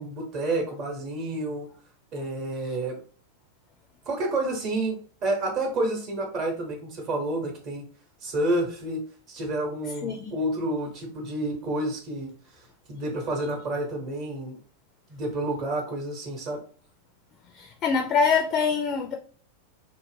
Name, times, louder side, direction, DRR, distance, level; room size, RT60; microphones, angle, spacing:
voice 1, 0.0-1.7 2.1-3.0 4.1-7.8 8.2-9.0 9.3-12.3 12.9-14.6 15.1-16.6, right 1 dB, 40° right, 2 dB, 0.9 m, -29 dB
voice 2, 10.0-10.3 17.5-19.1, left 5 dB, 30° left, 2 dB, 0.4 m, -25 dB
2.3 x 2.1 x 3.2 m, 0.43 s
figure-of-eight pair, 90°, 0 cm